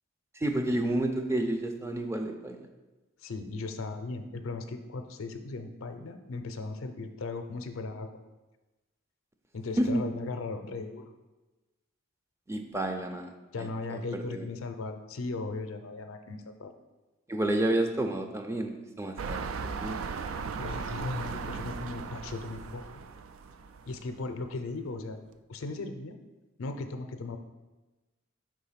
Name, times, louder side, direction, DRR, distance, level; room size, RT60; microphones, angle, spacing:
voice 1, 0.4-2.7 9.8-10.0 12.5-13.3 13.6-14.5 17.3-19.5 19.8-20.0, right 1 dB, 15° right, 5 dB, 0.4 m, -30 dB
voice 2, 3.2-8.1 9.5-11.0 13.5-16.7 20.5-22.8 23.9-25.2 25.5-26.1 26.6-27.4, left 3 dB, 90° left, 7 dB, 0.5 m, -37 dB
sound 1, 19.2-24.2 24.8-24.9, right 5 dB, 85° right, 0.3 m, -37 dB
4.9 x 3.7 x 5.7 m, 1.1 s
head